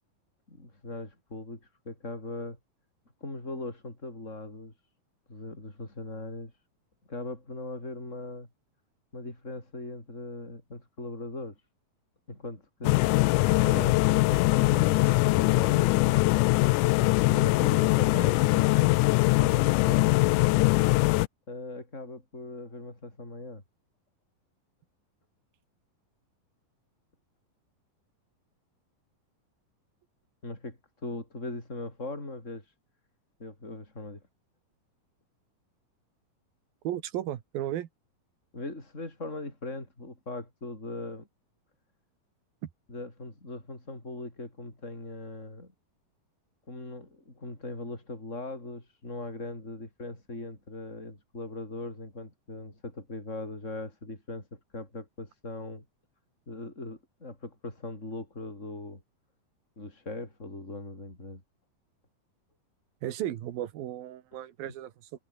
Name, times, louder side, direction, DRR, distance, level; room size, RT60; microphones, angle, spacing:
voice 1, 0.5-2.6 3.2-4.7 5.3-6.5 7.1-8.5 9.1-11.6 12.3-13.0 13.6-16.2 17.2-18.7 19.4-20.1 21.5-23.6 30.4-32.6 33.4-34.2 38.5-41.3 42.9-45.7 46.7-55.8 56.5-59.0 59.8-61.4 64.7-64.8, left 2 dB, 20° left, 7.3 m, -39 dB
sound 1, 12.8-21.3, left 21 dB, 90° left, 1.8 m, -22 dB
voice 2, 36.8-37.9 42.6-42.7 63.0-65.2, right 12 dB, 80° right, 3.4 m, -35 dB
omnidirectional pair, 4.1 m